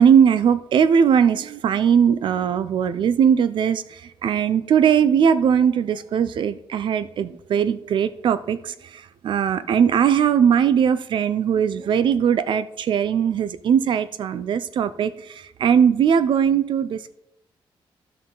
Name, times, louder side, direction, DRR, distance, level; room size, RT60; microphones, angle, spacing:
voice 1, 0.0-3.8 4.2-8.7 9.2-15.1 15.6-17.1, right 8 dB, 55° right, 14 dB, 0.5 m, -19 dB
12.5 x 5.5 x 3.8 m, 0.81 s
wide cardioid pair, 175°, 10 cm